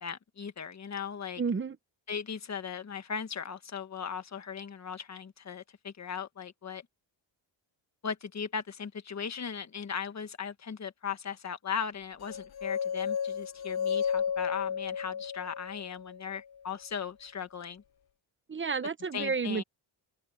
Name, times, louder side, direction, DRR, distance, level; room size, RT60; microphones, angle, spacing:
voice 1, 0.0-1.4 2.1-6.8 8.0-17.8 19.1-19.6, left 7 dB, 35° left, 1.5 m, -38 dB
voice 2, 1.4-1.8 18.5-19.6, right 5 dB, 25° right, 1.1 m, -31 dB
sound 1, 12.3-16.4, left 7 dB, 55° left, 0.9 m, -33 dB
open air
cardioid pair, 125°, 47 cm